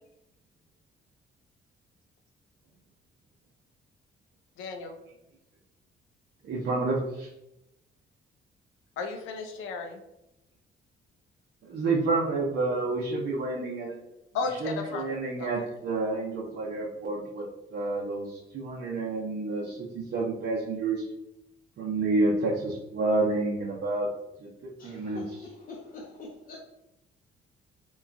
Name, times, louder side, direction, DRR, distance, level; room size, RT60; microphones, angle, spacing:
voice 1, 4.6-4.9 9.0-10.0 14.3-15.5, left 4 dB, 90° left, 0.5 m, -34 dB
voice 2, 6.4-7.3 11.6-14.0 14.6-17.5 17.7-21.0 21.8-24.1 24.4-25.4, right 3 dB, 65° right, 0.6 m, -29 dB
voice 3, 24.8-26.6, left 3 dB, 40° left, 0.5 m, -44 dB
3.0 x 2.3 x 2.4 m
cardioid pair, 90°, 20 cm